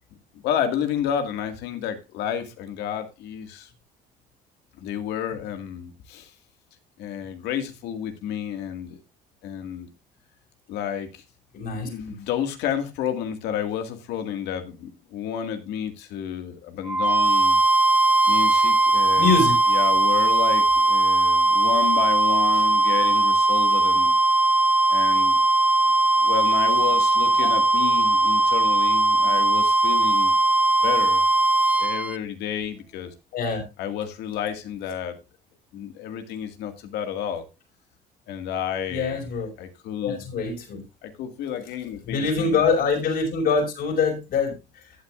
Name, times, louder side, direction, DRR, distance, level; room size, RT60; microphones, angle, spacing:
voice 1, 0.4-3.7 4.8-6.3 7.0-9.0 9.4-9.9 10.7-11.2 11.7-17.6 18.3-19.3 19.7-24.1 24.9-25.4 26.2-30.3 30.8-31.2 31.6-33.1 33.8-35.2 35.7-37.5 38.3-39.2 39.6-40.3 41.0-42.6, left 9 dB, 85° left, 2.0 m, -31 dB
voice 2, 11.5-11.9 19.2-19.5 33.3-33.6 38.9-39.5 40.0-40.8 42.1-44.5, left 4 dB, 65° left, 5.5 m, -24 dB
sound 1, 16.9-32.2, right 2 dB, 10° right, 0.5 m, -19 dB
15.0 x 8.9 x 2.5 m
cardioid pair, 110°, 17 cm